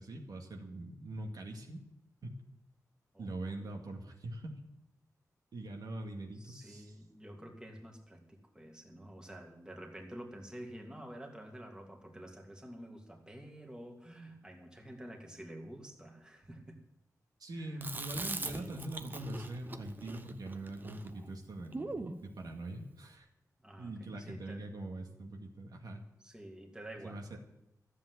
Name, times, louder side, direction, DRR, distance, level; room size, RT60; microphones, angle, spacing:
voice 1, 0.0-1.8 2.2-2.4 3.2-4.6 5.5-7.0 17.4-23.3 23.8-26.0 27.0-27.4, right 1 dB, 80° right, 2 dB, 2.2 m, -43 dB
voice 2, 3.1-3.7 6.3-16.8 17.5-17.9 18.4-18.7 23.6-24.7 26.2-27.2, right 1 dB, 10° right, 2 dB, 2.2 m, -49 dB
Chewing mastication, 17.8-22.2, right 2 dB, 30° right, 0.9 m, -42 dB
14.0 x 7.6 x 9.5 m, 0.84 s
wide cardioid pair, 140°, 6 cm